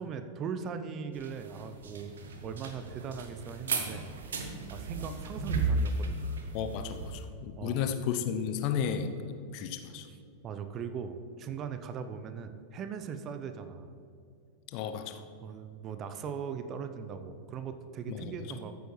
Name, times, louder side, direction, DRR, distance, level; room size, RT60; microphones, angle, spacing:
voice 1, 0.0-2.1 2.4-4.1 4.3-6.2 7.6-7.9 10.4-13.9 15.4-18.7, right 6 dB, 30° right, 9 dB, 0.7 m, -39 dB
sound 1, 1.2-7.2, right 3 dB, 65° right, 1.1 m, -34 dB
voice 2, 6.5-10.1 14.7-15.2 18.1-18.3, left 8 dB, 45° left, 8 dB, 0.7 m, -33 dB
14.5 x 8.8 x 3.3 m, 2.5 s
figure-of-eight pair, 90°, 0 cm